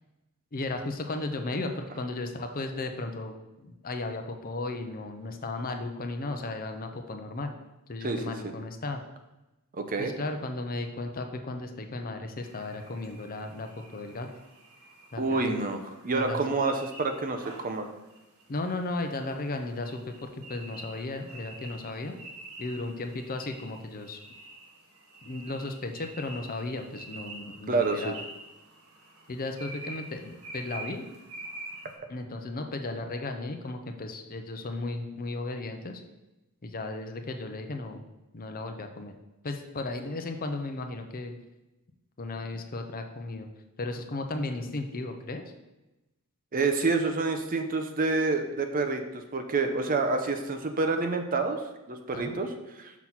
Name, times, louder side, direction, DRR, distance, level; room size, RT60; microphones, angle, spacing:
voice 1, 0.5-7.5 7.9-9.0 10.0-14.3 15.1-15.5 16.1-16.4 18.5-22.2 22.6-24.2 25.2-28.2 29.3-31.0 32.1-36.0 36.6-38.0 38.3-39.1 39.4-41.3 42.2-43.5 43.8-45.4 52.1-52.4, left 2 dB, 40° left, 6 dB, 0.7 m, -35 dB
voice 2, 9.7-10.1 15.2-17.9 27.7-28.1 46.5-52.5 52.8-52.9, right 3 dB, 40° right, 6 dB, 0.7 m, -28 dB
sound 1, 12.4-31.9, right 2 dB, 90° right, 1.6 m, -47 dB
6.0 x 4.1 x 5.9 m, 0.99 s
head